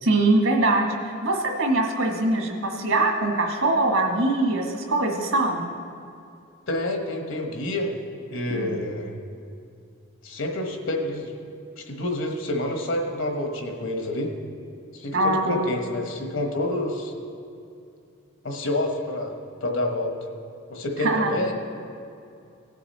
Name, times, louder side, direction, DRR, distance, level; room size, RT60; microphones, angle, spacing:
voice 1, 0.0-5.7 8.5-8.7 15.1-15.6 21.0-21.3, right 2 dB, 70° right, 2 dB, 1.7 m, -23 dB
voice 2, 6.7-7.9 8.3-9.1 10.2-11.3 11.8-14.3 14.9-17.1 18.4-19.3 19.6-20.1 20.7-21.5, left 1 dB, 65° left, 3 dB, 1.3 m, -28 dB
17.0 x 6.9 x 4.3 m, 2.5 s
head